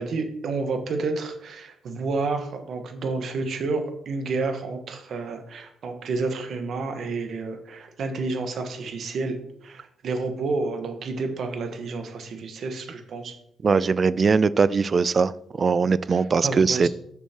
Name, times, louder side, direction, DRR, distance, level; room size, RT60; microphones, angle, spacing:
voice 1, 0.0-13.3 16.1-16.9, right 3 dB, 60° right, 6 dB, 1.2 m, -30 dB
voice 2, 13.6-15.3 15.6-16.9, right 5 dB, 40° right, 18 dB, 0.3 m, -20 dB
8.3 x 6.4 x 2.9 m, 0.72 s
cardioid pair, 90°, 0 cm